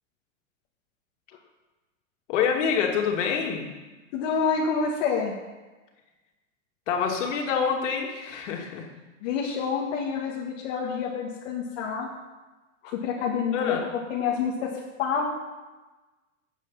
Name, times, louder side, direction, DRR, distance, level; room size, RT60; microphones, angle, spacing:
voice 1, 2.3-3.7 6.9-8.9 13.5-13.8, left 6 dB, 65° left, 1 dB, 2.7 m, -26 dB
voice 2, 4.1-5.3 9.2-12.1 12.8-13.8 14.1-15.2, left 6 dB, 50° left, -3 dB, 1.8 m, -28 dB
9.8 x 8.3 x 7.5 m, 1.2 s
supercardioid pair, 150°, 39 cm